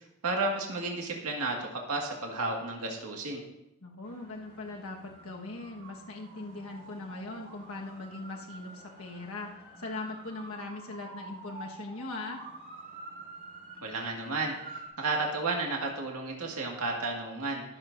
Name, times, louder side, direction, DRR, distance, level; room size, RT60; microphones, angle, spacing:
voice 1, 0.2-3.4 13.8-17.6, right 3 dB, 90° right, 0 dB, 1.9 m, -32 dB
voice 2, 3.8-9.5 9.8-12.4, left 2 dB, 70° left, 1 dB, 1.4 m, -40 dB
sound 1, 4.0-14.9, right 2 dB, 45° right, 5.0 m, -48 dB
22.0 x 7.6 x 2.6 m, 0.87 s
head